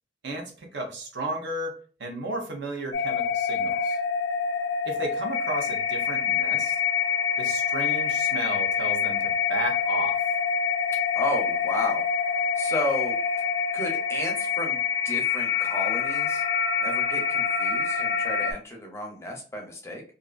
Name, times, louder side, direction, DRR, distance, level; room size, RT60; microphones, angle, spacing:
voice 1, 0.2-4.0 4.8-6.8 7.4-10.2, right 2 dB, 75° right, 3 dB, 0.7 m, -34 dB
sound 1, 2.9-18.5, left 6 dB, 85° left, 0.4 m, -26 dB
voice 2, 11.2-12.0 12.6-13.4 13.7-16.4 16.8-20.0, left 1 dB, 15° left, 1 dB, 0.5 m, -33 dB
2.5 x 2.4 x 2.3 m, 0.39 s
head